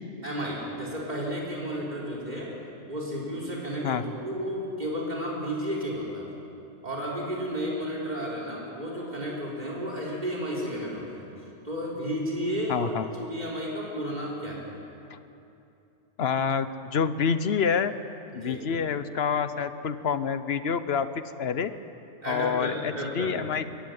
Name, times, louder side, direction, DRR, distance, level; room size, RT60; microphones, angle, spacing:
voice 1, 0.2-2.5 2.9-6.3 6.8-11.3 11.6-14.6 18.3-18.6 22.2-23.3, equal, 40° right, -3 dB, 4.5 m, -32 dB
voice 2, 12.7-13.0 15.1-15.2 16.2-17.9 18.3-21.7 22.3-23.6, left 6 dB, 65° left, 12 dB, 1.1 m, -27 dB
22.0 x 16.0 x 9.4 m, 2.7 s
omnidirectional pair, 1.2 m